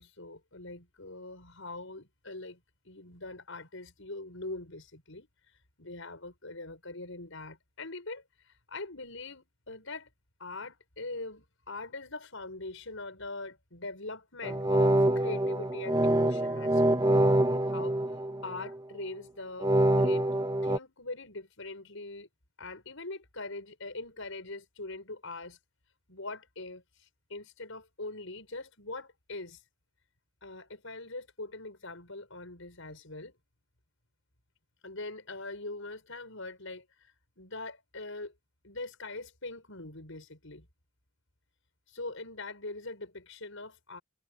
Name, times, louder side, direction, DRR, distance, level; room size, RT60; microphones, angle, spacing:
voice 1, 0.0-2.6 2.8-10.1 10.4-17.1 17.5-18.0 18.4-22.3 22.6-25.6 26.1-29.6 30.4-33.3 34.8-38.3 38.6-40.7 41.9-44.0, left 2 dB, 65° left, 7.0 m, -42 dB
sound 1, 14.4-18.7 19.6-20.8, right 1 dB, 20° right, 1.6 m, -25 dB
head